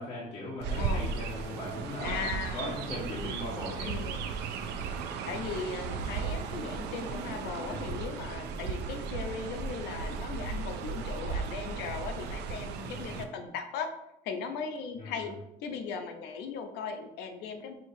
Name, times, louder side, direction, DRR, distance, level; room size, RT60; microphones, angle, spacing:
voice 1, 0.0-2.3 2.5-3.9 7.6-7.9 12.9-13.2 15.0-15.3, left 1 dB, 40° left, -7 dB, 1.3 m, -39 dB
Chirp tweet, 0.6-13.2, right 5 dB, 85° right, 0.5 m, -36 dB
voice 2, 0.7-1.1 2.0-2.8 3.8-4.3 5.3-13.9 14.2-15.3 15.6-17.7, left 5 dB, 90° left, 6 dB, 0.6 m, -38 dB
6.3 x 2.9 x 2.7 m, 0.84 s
cardioid pair, 110°, 17 cm